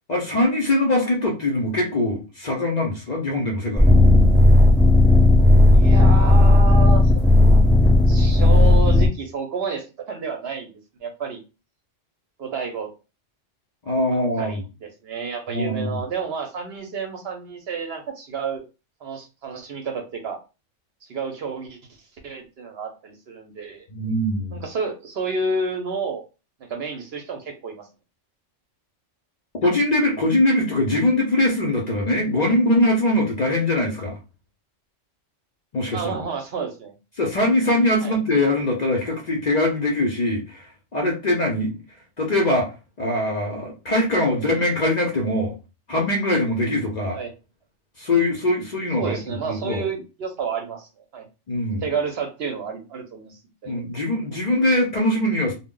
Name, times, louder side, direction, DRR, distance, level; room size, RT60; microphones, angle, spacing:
voice 1, 0.1-4.0 13.9-14.6 15.5-16.0 23.9-24.6 29.6-34.2 35.7-36.1 37.2-41.8 42.2-42.7 43.0-45.5 45.9-47.2 48.0-49.8 51.5-51.8 53.7-55.5, left 1 dB, 55° left, 0 dB, 0.4 m, -22 dB
sound 1, 3.8-9.1, left 2 dB, ahead, 0.5 m, -14 dB
voice 2, 5.7-7.1 8.1-11.4 12.4-12.9 14.4-18.6 19.0-20.4 21.0-21.8 22.2-23.9 24.5-26.2 26.6-27.9 35.9-36.9 38.0-38.2 44.4-44.5 47.1-47.3 49.0-51.3 51.8-53.8, right 4 dB, 60° right, 4 dB, 0.7 m, -30 dB
2.1 x 2.0 x 3.5 m, 0.30 s
omnidirectional pair, 1.3 m